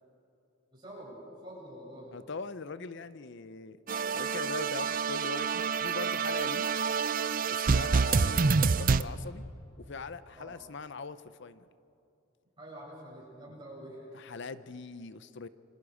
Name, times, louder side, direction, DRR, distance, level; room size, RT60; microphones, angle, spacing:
voice 1, 0.7-2.2 10.4-10.5 12.6-14.4, right 1 dB, 20° right, -5 dB, 7.4 m, -47 dB
voice 2, 2.1-3.8 4.1-6.7 7.5-9.5 9.9-11.6 13.5-13.6 14.1-15.5, left 4 dB, 55° left, 14 dB, 0.6 m, -41 dB
sound 1, 3.9-9.0, right 5 dB, 40° right, 0.5 m, -27 dB
28.5 x 24.0 x 5.0 m, 2.7 s
head